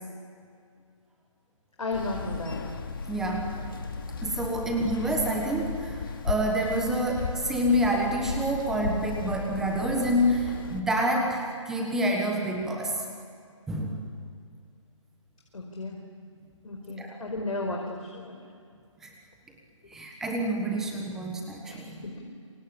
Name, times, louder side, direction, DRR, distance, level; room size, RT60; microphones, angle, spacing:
voice 1, 1.8-2.6 15.5-16.0 16.6-18.4 21.7-22.2, left 2 dB, 85° left, 1 dB, 5.1 m, -34 dB
sound 1, 1.9-10.8, left 5 dB, 40° left, 2.4 m, -35 dB
voice 2, 3.1-3.6 4.2-13.0 13.7-14.0 17.0-17.2 19.0-19.1 19.9-22.0, equal, 5° right, 1 dB, 1.3 m, -28 dB
27.0 x 25.0 x 8.8 m, 2.3 s
hypercardioid pair, 175°, 17 cm